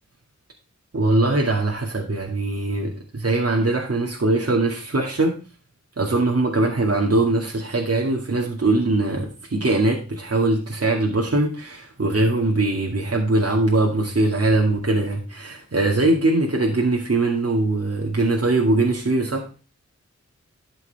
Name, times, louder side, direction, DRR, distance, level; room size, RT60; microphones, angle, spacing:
voice 1, 0.9-5.4 6.0-19.6, right 2 dB, 50° right, 2.2 m, -21 dB
12.0 x 7.0 x 3.4 m
wide cardioid pair, 55°, 30 cm